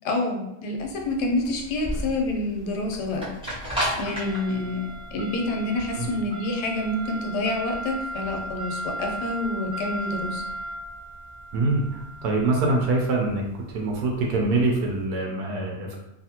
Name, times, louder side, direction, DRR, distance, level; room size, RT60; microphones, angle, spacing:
voice 1, 0.0-3.3 4.0-10.4, left 2 dB, 80° left, 2 dB, 1.2 m, -28 dB
sound 1, 0.8-14.9, right 1 dB, 5° right, 0.5 m, -35 dB
voice 2, 11.5-16.0, right 2 dB, 75° right, -1 dB, 1.1 m, -24 dB
2.7 x 2.5 x 2.8 m, 0.91 s
omnidirectional pair, 1.7 m